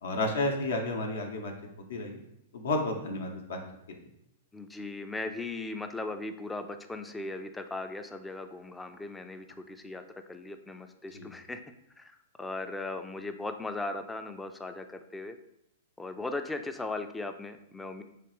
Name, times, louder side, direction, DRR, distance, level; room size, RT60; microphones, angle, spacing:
voice 1, 0.0-1.5 1.9-2.2 2.5-3.6 3.9-4.0 11.1-11.3, left 2 dB, 75° left, 3 dB, 0.6 m, -31 dB
voice 2, 4.5-10.0 10.3-11.6 12.0-12.1 12.4-15.3 16.0-18.0, left 2 dB, 10° left, 7 dB, 0.3 m, -38 dB
3.3 x 3.1 x 3.0 m, 0.80 s
hypercardioid pair, 120°, 0 cm